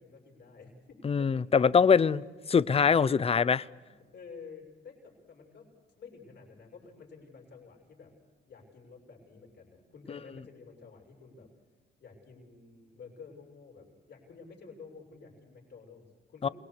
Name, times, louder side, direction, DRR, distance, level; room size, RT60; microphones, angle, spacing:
voice 1, 0.0-1.4 3.7-8.1 8.4-11.5 12.0-16.5, left 5 dB, 60° left, 6.4 m, -51 dB
voice 2, 1.0-3.6 16.4-16.5, left 6 dB, 30° left, 0.6 m, -23 dB
28.0 x 19.5 x 6.8 m
cardioid pair, 90°, 20 cm